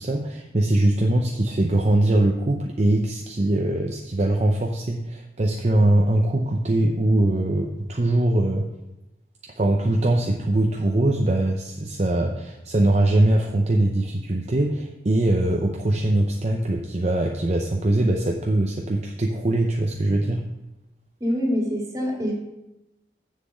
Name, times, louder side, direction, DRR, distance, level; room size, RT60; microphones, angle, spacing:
voice 1, 0.0-8.6 9.4-20.4, right 1 dB, 40° right, 1 dB, 0.7 m, -22 dB
voice 2, 21.2-22.3, equal, 20° right, -1 dB, 2.2 m, -25 dB
7.5 x 7.0 x 6.3 m, 0.95 s
head